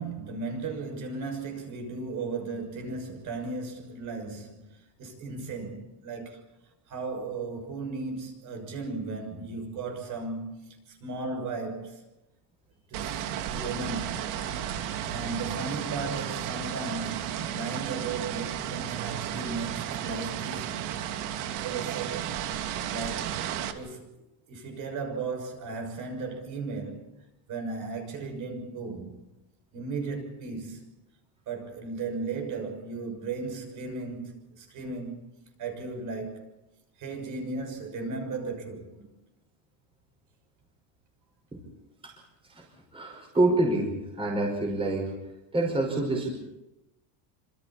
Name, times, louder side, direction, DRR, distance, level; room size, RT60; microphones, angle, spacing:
voice 1, 0.0-4.7 5.0-6.4 6.9-12.0 12.9-14.3 15.0-20.9 21.6-22.4 22.9-23.4 23.7-24.1 24.5-27.1 27.5-29.2 29.7-30.9 31.5-35.2 35.6-36.5 37.0-39.1, right 3 dB, 40° right, 6.4 m, -36 dB
sound 1, 12.9-23.7, right 10 dB, 75° right, 2.7 m, -33 dB
voice 2, 42.9-45.1 45.5-46.3, right 2 dB, 10° right, 5.3 m, -27 dB
29.0 x 26.5 x 4.3 m
cardioid pair, 180°, 48 cm